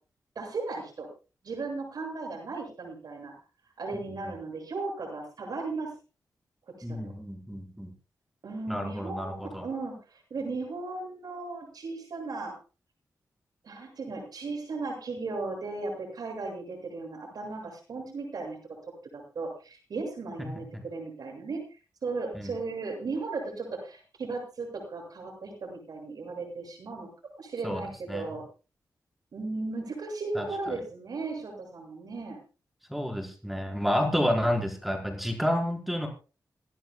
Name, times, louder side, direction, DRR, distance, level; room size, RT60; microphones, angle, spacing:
voice 1, 0.3-1.1 1.4-3.3 3.8-5.9 6.8-7.0 8.4-12.5 13.6-18.6 19.1-21.6 22.0-27.1 27.4-28.4 29.3-32.4, right 3 dB, 75° right, 2 dB, 7.8 m, -36 dB
voice 2, 6.8-7.9 8.7-9.7 20.7-20.8 22.3-22.5 27.6-27.8 28.1-28.3 30.3-30.5 32.9-36.1, equal, ahead, 1 dB, 5.0 m, -30 dB
28.0 x 11.0 x 2.4 m, 0.34 s
cardioid pair, 80°, 7 cm